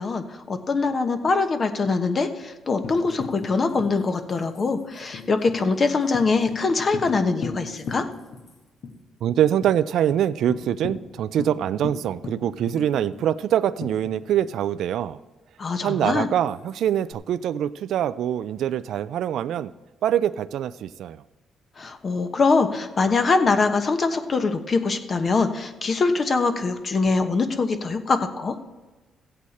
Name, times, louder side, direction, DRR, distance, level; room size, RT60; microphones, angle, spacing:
voice 1, 0.0-8.0 15.6-16.3 21.8-28.5, left 4 dB, 45° left, 8 dB, 1.0 m, -23 dB
Tambourine, 2.8-8.5 8.8-8.9 9.3-9.7 10.1-10.2 10.5-14.6 16.1-17.1, left 4 dB, 65° left, 1.5 m, -38 dB
voice 2, 9.2-15.2 15.8-19.7 20.0-21.2, right 10 dB, 75° right, 16 dB, 0.3 m, -24 dB
14.5 x 8.3 x 4.3 m, 1.2 s
supercardioid pair, 70°, 0 cm